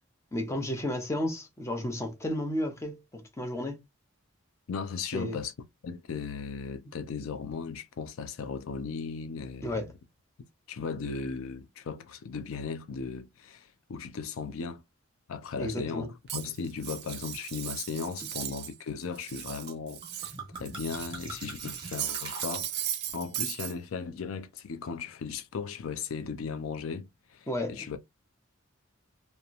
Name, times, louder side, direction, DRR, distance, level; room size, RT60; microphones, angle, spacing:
voice 1, 0.3-3.8 5.1-5.4 9.6-9.9 15.6-16.1 27.5-28.0, left 1 dB, 15° left, 0.7 m, -33 dB
voice 2, 4.7-5.5 5.8-9.9 10.7-14.8 15.3-16.1 16.3-28.0, left 5 dB, 80° left, 0.4 m, -37 dB
Cutlery silverware, 16.3-18.7 19.0-21.2 21.5-23.7, right 11 dB, 55° right, 0.4 m, -37 dB
sound 1, 19.7-19.8 20.0-23.1, right 3 dB, 25° right, 0.9 m, -43 dB
2.8 x 2.1 x 2.4 m
head